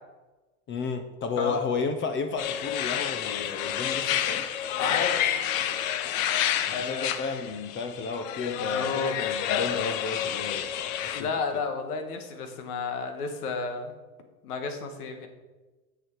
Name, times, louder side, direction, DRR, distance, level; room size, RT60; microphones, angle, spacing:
voice 1, 0.7-4.6 6.7-11.3, left 4 dB, 25° left, 0.7 m, -33 dB
sound 1, 2.4-11.2, left 10 dB, 65° left, 0.9 m, -29 dB
voice 2, 4.8-5.2 6.7-7.1 8.7-9.2 11.1-13.9 14.4-15.3, left 4 dB, 85° left, 1.6 m, -32 dB
9.6 x 6.7 x 4.6 m
supercardioid pair, 125°, 44 cm